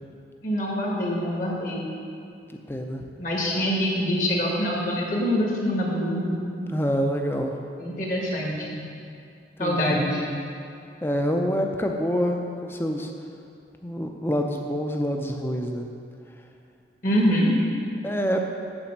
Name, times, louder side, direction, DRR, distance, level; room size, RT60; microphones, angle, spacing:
voice 1, 0.4-1.8 3.2-6.5 7.8-8.8 9.6-10.2 17.0-17.6, equal, 45° left, -3 dB, 1.7 m, -25 dB
voice 2, 2.7-3.1 6.7-7.6 9.6-10.0 11.0-13.1 13.8-15.9 18.0-18.4, equal, 10° left, 3 dB, 0.5 m, -26 dB
8.9 x 4.3 x 7.3 m, 2.5 s
head